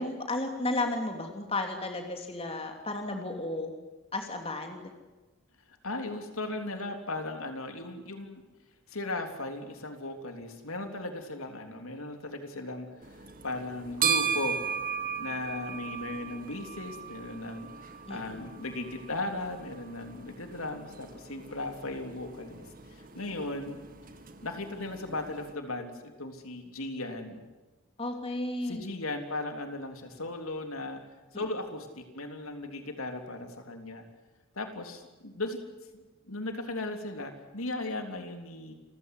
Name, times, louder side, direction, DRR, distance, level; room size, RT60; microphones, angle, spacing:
voice 1, 0.0-3.7 4.1-4.9 18.1-18.4 28.0-28.8 31.3-31.4, left 2 dB, 25° left, 4 dB, 3.0 m, -33 dB
voice 2, 5.8-8.4 8.9-14.6 15.2-23.8 24.4-27.4 28.6-31.0 31.3-34.0 34.5-35.6 35.9-38.7, left 2 dB, 75° left, 6 dB, 3.5 m, -37 dB
sound 1, 13.0-25.5, right 7 dB, 40° right, 2.0 m, -37 dB
28.5 x 16.0 x 9.8 m, 1.2 s
head